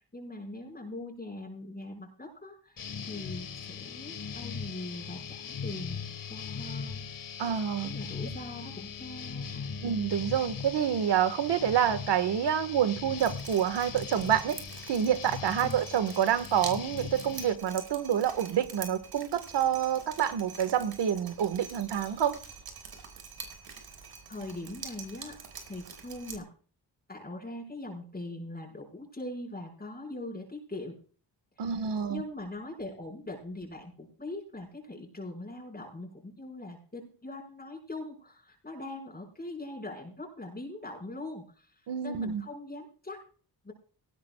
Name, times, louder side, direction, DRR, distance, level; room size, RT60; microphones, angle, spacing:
voice 1, 0.0-7.0 7.8-9.8 15.6-15.8 23.6-24.0 24.3-25.4 25.7-26.5 27.1-31.0 31.6-43.2 43.6-43.7, left 2 dB, 25° left, 0 dB, 5.5 m, -42 dB
sound 1, 2.8-17.6, left 6 dB, 55° left, 1.7 m, -40 dB
voice 2, 7.4-7.9 9.8-14.6 14.9-22.4 31.6-32.2 41.9-42.4, right 9 dB, 85° right, 11 dB, 1.8 m, -28 dB
Drip, 13.2-26.4, right 5 dB, 65° right, 5.6 m, -45 dB
18.5 x 17.5 x 2.4 m, 0.41 s
cardioid pair, 95°, 40 cm